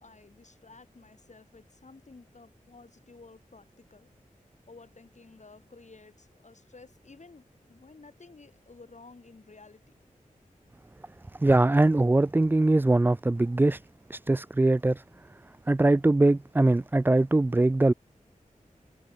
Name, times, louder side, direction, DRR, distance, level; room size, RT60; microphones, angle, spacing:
voice 1, 0.0-4.1 4.7-9.9, left 3 dB, 55° left, 3.8 m, -53 dB
voice 2, 11.3-13.8 14.1-15.3 15.7-17.9, right 2 dB, 15° right, 0.3 m, -22 dB
wide cardioid pair, 60°, 14 cm